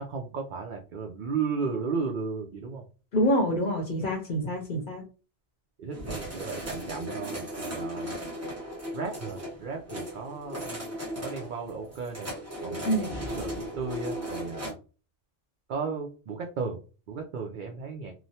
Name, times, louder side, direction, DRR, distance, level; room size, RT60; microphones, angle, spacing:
voice 1, 0.0-2.8 5.8-8.2 8.9-10.9 11.2-12.3 12.6-14.8 15.7-16.8 17.1-18.1, right 5 dB, 60° right, 2 dB, 0.5 m, -35 dB
voice 2, 3.1-5.0 12.8-13.1, equal, 50° left, 0 dB, 0.8 m, -26 dB
sound 1, 5.9-14.7, equal, 15° right, 0.7 m, -37 dB
3.0 x 2.0 x 2.7 m, 0.35 s
omnidirectional pair, 1.2 m